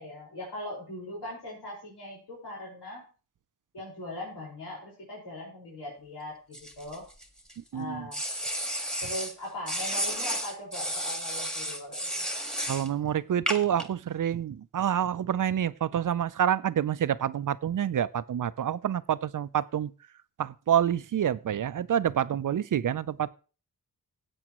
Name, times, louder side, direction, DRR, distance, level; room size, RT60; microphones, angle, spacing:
voice 1, 0.0-3.1 3.7-7.0 7.7-8.2 9.0-12.3, left 1 dB, 90° left, 5.1 m, -40 dB
sound 1, 6.5-7.5 8.1-9.3 9.7-12.9 13.5-13.8, equal, ahead, 1.6 m, -32 dB
voice 2, 7.7-8.0 12.7-19.9 20.4-23.3, right 9 dB, 55° right, 0.5 m, -27 dB
16.0 x 8.5 x 3.0 m
wide cardioid pair, 100°, 39 cm